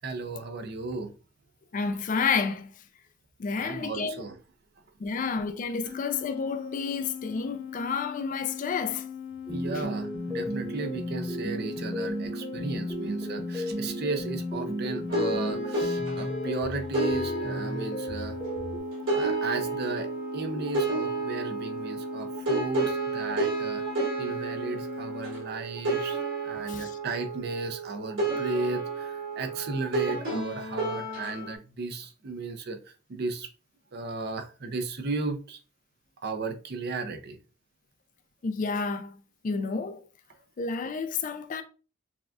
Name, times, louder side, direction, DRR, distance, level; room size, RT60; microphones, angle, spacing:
voice 1, 0.0-1.1 3.6-4.4 9.5-18.4 19.1-23.8 24.2-26.2 26.4-33.5 33.9-35.6 36.2-37.4, right 3 dB, 50° right, 0.5 m, -35 dB
voice 2, 1.7-2.7 3.4-4.2 5.0-9.0 26.7-26.9 38.4-39.1 39.4-40.0 40.6-41.6, left 5 dB, 40° left, 0.3 m, -30 dB
sound 1, 5.9-25.4, left 8 dB, 70° left, 1.2 m, -40 dB
sound 2, 9.5-18.8, right 1 dB, 5° right, 0.9 m, -34 dB
sound 3, 15.1-31.5, right 2 dB, 70° right, 2.1 m, -31 dB
6.1 x 2.3 x 2.4 m
head